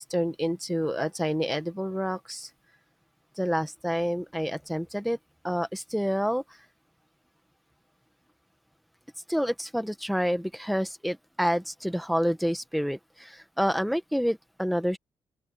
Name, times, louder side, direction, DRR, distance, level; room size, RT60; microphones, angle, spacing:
voice 1, 0.0-2.5 3.4-5.2 5.4-6.4 9.3-15.0, equal, ahead, 1.2 m, -28 dB
open air
wide cardioid pair, 165°, 8 cm